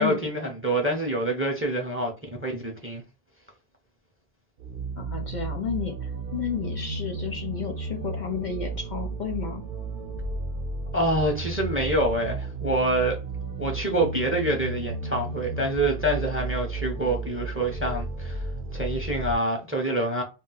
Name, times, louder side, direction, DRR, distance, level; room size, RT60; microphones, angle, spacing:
voice 1, 0.0-2.1 2.4-3.0 10.9-13.2 13.6-18.5 18.7-20.2, right 1 dB, 15° right, 0.5 m, -26 dB
sound 1, 4.6-19.3, right 3 dB, 60° right, 0.7 m, -33 dB
voice 2, 5.0-9.6, left 7 dB, 55° left, 0.6 m, -32 dB
2.3 x 2.3 x 3.8 m
omnidirectional pair, 1.0 m